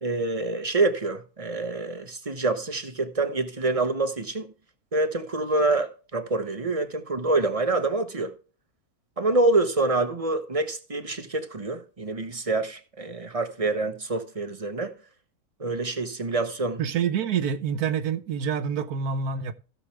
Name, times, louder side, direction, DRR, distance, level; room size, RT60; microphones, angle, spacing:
voice 1, 0.0-4.5 4.9-8.3 9.2-14.9 15.6-16.8, right 2 dB, 25° right, 1.1 m, -26 dB
voice 2, 16.8-19.5, right 7 dB, 85° right, 1.4 m, -27 dB
16.5 x 6.5 x 3.4 m
omnidirectional pair, 1.6 m